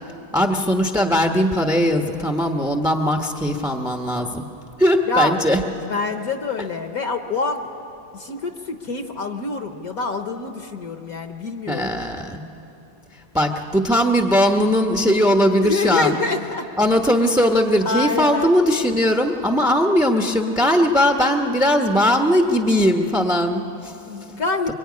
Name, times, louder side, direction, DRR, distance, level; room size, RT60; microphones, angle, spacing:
voice 1, 0.3-4.4 4.8-5.6 11.7-12.4 13.3-16.2 16.8-23.9, equal, 5° right, 4 dB, 0.6 m, -19 dB
voice 2, 5.1-5.5 5.9-7.7 8.1-11.9 15.6-16.7 17.8-18.5 24.1-24.7, left 4 dB, 55° left, 6 dB, 1.3 m, -26 dB
23.5 x 23.0 x 9.6 m, 2.9 s
omnidirectional pair, 2.1 m